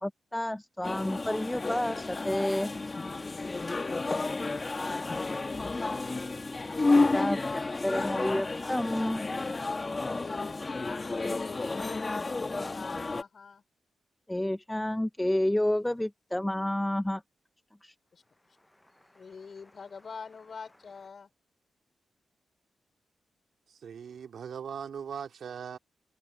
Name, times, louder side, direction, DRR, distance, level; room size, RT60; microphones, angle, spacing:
voice 1, 0.0-2.7 6.9-9.2 14.3-17.2 17.8-17.9, left 1 dB, 10° left, 0.8 m, -30 dB
sound 1, 0.8-13.2, left 3 dB, 35° left, 2.1 m, -31 dB
voice 2, 3.6-6.4 10.2-13.6 18.1-18.2 19.1-21.3, left 5 dB, 60° left, 5.0 m, -45 dB
voice 3, 23.7-25.8, right 7 dB, 75° right, 3.0 m, -40 dB
supercardioid pair, 50°, 0 cm